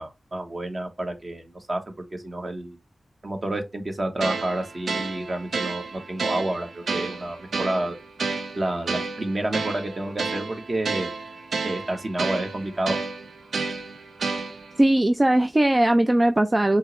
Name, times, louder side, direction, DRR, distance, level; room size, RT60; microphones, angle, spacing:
voice 1, 0.0-1.8 2.1-2.8 3.2-7.9 8.5-11.1 11.6-13.0, right 1 dB, 45° right, 1.1 m, -29 dB
sound 1, 4.2-14.8, right 4 dB, 90° right, 0.5 m, -31 dB
voice 2, 14.8-16.8, right 1 dB, 25° right, 0.3 m, -19 dB
5.3 x 2.0 x 3.0 m
cardioid pair, 60°, 0 cm